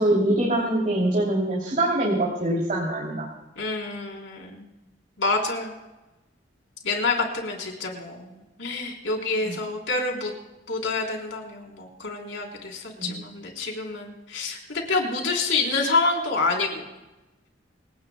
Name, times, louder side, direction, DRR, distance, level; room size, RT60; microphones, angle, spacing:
voice 1, 0.0-3.3 9.4-9.6 13.0-13.2, right 1 dB, 45° right, -4 dB, 3.1 m, -24 dB
voice 2, 3.6-4.7 5.2-5.7 6.8-10.3 10.7-16.9, left 3 dB, 80° left, 0 dB, 3.8 m, -27 dB
28.0 x 18.0 x 2.3 m, 1.0 s
head